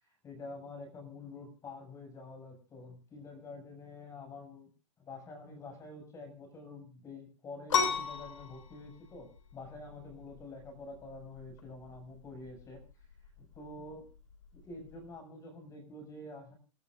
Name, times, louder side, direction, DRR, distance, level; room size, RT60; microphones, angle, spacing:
voice 1, 0.0-4.7 5.0-12.8 13.4-14.1 14.5-16.6, left 2 dB, 20° left, 4 dB, 7.2 m, -47 dB
sound 1, 7.7-15.1, left 6 dB, 85° left, 6.6 m, -37 dB
29.0 x 12.0 x 2.6 m, 0.36 s
supercardioid pair, 150°, 17 cm